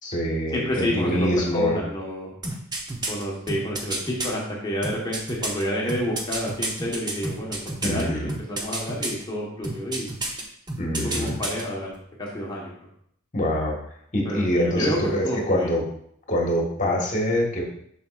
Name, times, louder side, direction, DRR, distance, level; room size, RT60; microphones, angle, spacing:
voice 1, 0.0-1.8 7.8-8.3 10.8-11.3 13.3-13.8 14.1-15.8 16.3-17.6, left 1 dB, 35° left, -1 dB, 1.5 m, -24 dB
voice 2, 0.5-1.3 1.5-2.3 3.1-10.1 11.0-12.9 14.2-15.0 15.2-15.7, equal, 20° left, -3 dB, 1.3 m, -29 dB
sound 1, 2.4-4.3 4.8-8.0 8.3-9.2 9.6-10.4 10.7-11.6 11.9-12.0, right 2 dB, 20° right, 0.8 m, -30 dB
7.0 x 6.1 x 2.5 m, 0.67 s
head